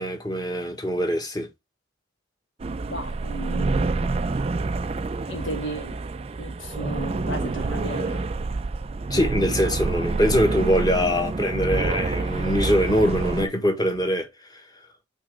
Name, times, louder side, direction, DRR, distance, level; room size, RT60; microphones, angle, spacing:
voice 1, 0.0-1.5 9.1-14.6, equal, 20° left, 1.3 m, -23 dB
sound 1, 2.6-13.5, right 3 dB, 30° right, 0.3 m, -27 dB
voice 2, 2.9-4.3 5.3-6.0 6.4-8.2, right 1 dB, 75° left, 2.4 m, -34 dB
5.8 x 3.3 x 5.2 m
head